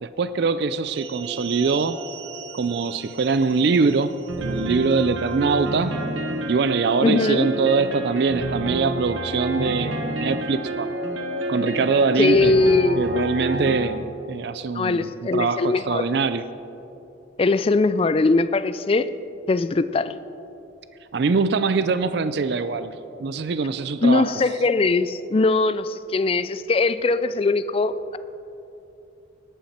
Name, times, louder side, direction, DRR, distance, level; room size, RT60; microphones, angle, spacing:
voice 1, 0.0-2.0 2.5-4.1 4.4-6.0 6.5-10.9 11.5-12.6 13.0-16.4 21.1-24.3, right 4 dB, 55° right, 12 dB, 0.4 m, -23 dB
sound 1, 1.0-13.8, right 1 dB, 85° right, 1.2 m, -30 dB
voice 2, 7.0-7.5 12.2-13.0 14.7-16.0 17.4-19.1 19.5-20.1 24.0-28.2, left 3 dB, 30° left, 13 dB, 0.3 m, -21 dB
18.5 x 8.9 x 4.3 m, 2.9 s
head